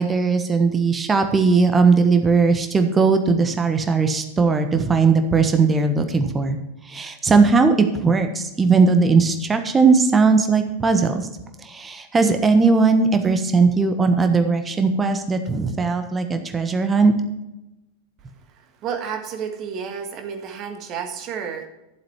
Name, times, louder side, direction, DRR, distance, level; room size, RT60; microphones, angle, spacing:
voice 1, 0.0-6.6 6.9-11.3 11.6-17.1, right 4 dB, 15° right, 7 dB, 1.3 m, -18 dB
voice 2, 18.8-21.7, right 7 dB, 35° right, 5 dB, 1.7 m, -30 dB
12.5 x 7.5 x 4.5 m, 0.95 s
figure-of-eight pair, 90°, 0 cm